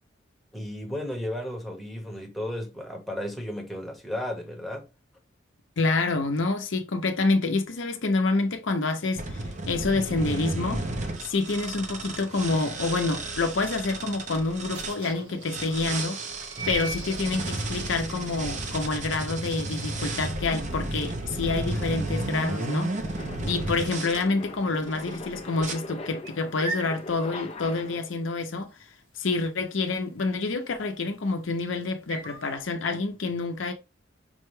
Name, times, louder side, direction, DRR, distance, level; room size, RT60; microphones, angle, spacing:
voice 1, 0.5-4.9, left 1 dB, ahead, 1.0 m, -34 dB
voice 2, 5.8-10.9 11.2-16.2 16.7-22.9 23.5-28.7 29.2-33.7, left 3 dB, 70° left, 0.7 m, -27 dB
sound 1, 9.2-15.0 15.4-24.2 24.9-25.2 25.6-25.7, right 2 dB, 40° right, 0.6 m, -33 dB
sound 2, 14.7-24.2 24.5-24.9 25.1-32.6, right 3 dB, 85° right, 1.2 m, -41 dB
sound 3, 22.3-28.3, left 2 dB, 30° left, 0.5 m, -42 dB
5.3 x 2.2 x 3.1 m
head